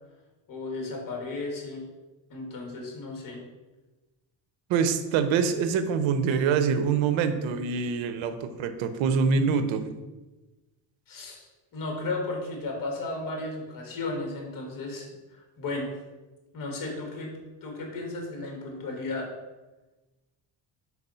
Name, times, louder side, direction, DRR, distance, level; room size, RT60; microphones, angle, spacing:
voice 1, 0.5-1.9 2.3-3.4 11.1-15.9 16.5-17.3 17.6-19.3, left 2 dB, 45° left, 1 dB, 1.9 m, -34 dB
voice 2, 4.7-9.8, right 6 dB, 75° right, 10 dB, 0.8 m, -25 dB
4.7 x 4.1 x 5.5 m, 1.1 s
cardioid pair, 120°, 46 cm